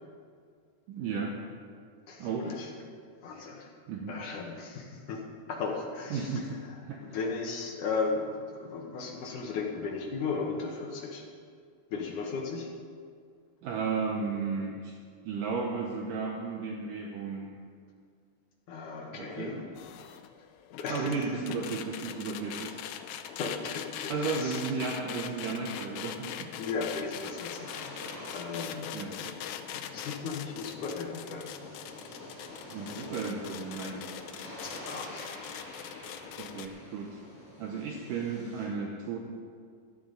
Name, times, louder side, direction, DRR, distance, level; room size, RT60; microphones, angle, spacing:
voice 1, 0.9-1.4 2.2-2.5 3.9-4.2 6.1-7.0 13.6-14.9 15.3-17.5 19.1-19.7 20.9-22.8 24.1-26.5 28.9-29.4 32.7-34.1 36.4-37.2 37.6-39.2, right 5 dB, 80° right, 1 dB, 1.9 m, -34 dB
voice 2, 2.1-2.7 3.2-3.7 4.1-5.2 5.5-6.4 7.0-11.2 11.9-12.7 18.7-19.6 20.7-21.3 23.4-24.6 26.6-27.9 28.3-28.9 29.7-31.5 34.6-35.3, left 4 dB, 65° left, 0 dB, 2.1 m, -36 dB
sound 1, 19.8-36.7, left 10 dB, 90° left, 2.0 m, -42 dB
sound 2, 26.5-38.6, equal, 5° right, 4.0 m, -48 dB
16.0 x 13.0 x 3.9 m, 2.1 s
omnidirectional pair, 4.9 m